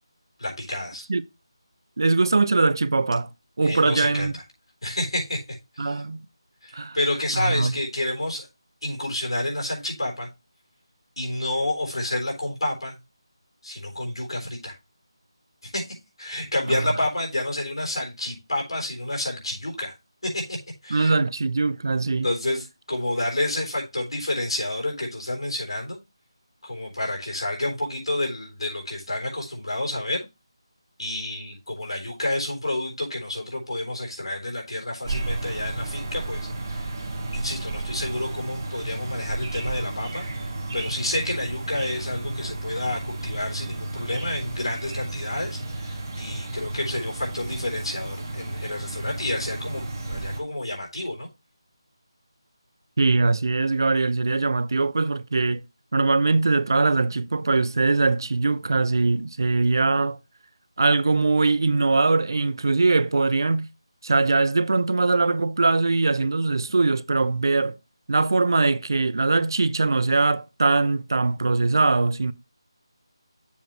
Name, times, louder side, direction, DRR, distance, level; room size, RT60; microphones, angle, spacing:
voice 1, 0.4-1.1 3.6-4.4 4.8-6.0 6.6-8.5 8.8-10.3 11.2-13.0 13.6-14.7 15.6-15.8 16.2-19.9 20.2-20.6 20.8-21.1 22.2-26.0 26.6-30.3 31.0-36.9 37.3-51.3, left 1 dB, 90° left, 3.6 m, -29 dB
voice 2, 2.0-3.3 3.6-4.3 5.8-6.2 6.7-7.0 7.4-7.7 20.9-22.3 53.0-55.6 55.9-60.2 60.8-63.7 64.0-67.8 68.1-72.3, right 3 dB, 50° right, 0.4 m, -21 dB
sound 1, 35.0-50.4, right 2 dB, 25° right, 1.4 m, -33 dB
7.1 x 3.1 x 5.9 m
figure-of-eight pair, 175°, 3 cm